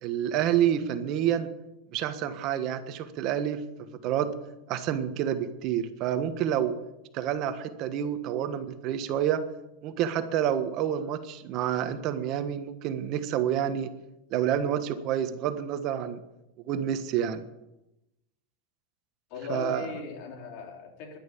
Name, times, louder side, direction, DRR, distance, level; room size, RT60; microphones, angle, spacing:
voice 1, 0.0-1.5 1.9-3.6 4.0-4.3 4.7-6.7 7.1-9.4 9.8-13.9 14.3-16.2 16.7-17.4 19.5-19.9, right 10 dB, 45° right, 10 dB, 1.3 m, -28 dB
voice 2, 19.3-21.2, left 6 dB, 55° left, 3 dB, 3.6 m, -38 dB
11.5 x 10.5 x 8.5 m, 0.91 s
supercardioid pair, 135°, 0 cm